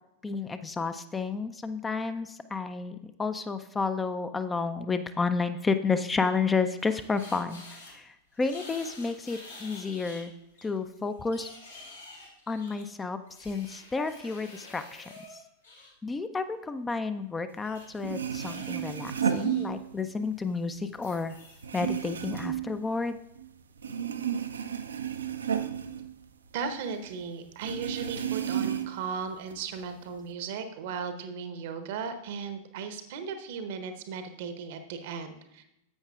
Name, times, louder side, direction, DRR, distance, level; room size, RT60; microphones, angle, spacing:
voice 1, 0.2-10.3 10.6-11.5 12.5-15.4 16.0-21.3 21.7-23.2, left 4 dB, 15° left, 10 dB, 0.4 m, -31 dB
sound 1, 6.4-7.9 8.3-10.3 10.6-15.9 17.6-19.6 20.0-20.2 20.9-21.6, left 2 dB, 75° left, 1.9 m, -49 dB
sound 2, 17.7-17.8 18.0-20.2 20.6-23.5 23.8-26.8 27.1-27.2 27.6-29.1 29.5-30.2, right 9 dB, 70° right, 0.4 m, -32 dB
voice 2, 26.5-35.6, right 5 dB, 50° right, 8 dB, 0.8 m, -36 dB
10.5 x 7.9 x 2.4 m, 0.84 s
figure-of-eight pair, 90°, 0 cm